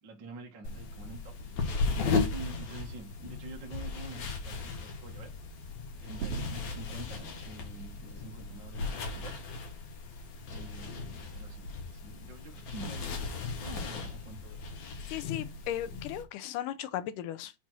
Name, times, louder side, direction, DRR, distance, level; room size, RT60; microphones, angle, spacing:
voice 1, 0.0-1.4 2.3-5.3 6.0-9.9 10.5-14.7, right 3 dB, 45° right, 1.7 m, -48 dB
sound 1, 0.6-16.2, left 4 dB, 60° left, 2.5 m, -36 dB
sound 2, 5.4-9.7, right 7 dB, 65° right, 2.1 m, -44 dB
voice 2, 15.1-17.5, left 12 dB, 85° left, 2.2 m, -36 dB
6.0 x 4.2 x 6.1 m
omnidirectional pair, 3.8 m